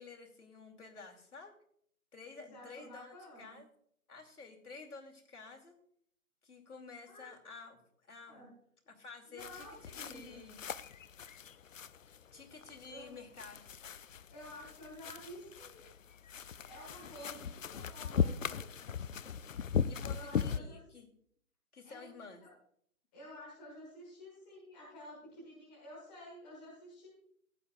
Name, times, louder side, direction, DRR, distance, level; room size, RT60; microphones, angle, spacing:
voice 1, 0.0-1.5 2.1-3.7 4.1-5.8 6.4-7.8 8.1-8.5 8.9-10.7 12.3-13.7 19.8-21.1 21.7-22.4, left 4 dB, 85° left, 2 dB, 2.7 m, -51 dB
voice 2, 2.3-3.6 7.1-7.3 8.2-8.5 9.3-10.4 12.9-13.1 14.3-15.8 16.6-18.7 20.1-20.8 21.8-22.5 23.1-27.1, equal, 5° left, -7 dB, 1.5 m, -51 dB
sound 1, 9.4-20.6, left 7 dB, 60° left, 0.5 m, -39 dB
15.5 x 9.6 x 2.5 m, 0.65 s
hypercardioid pair, 175°, 44 cm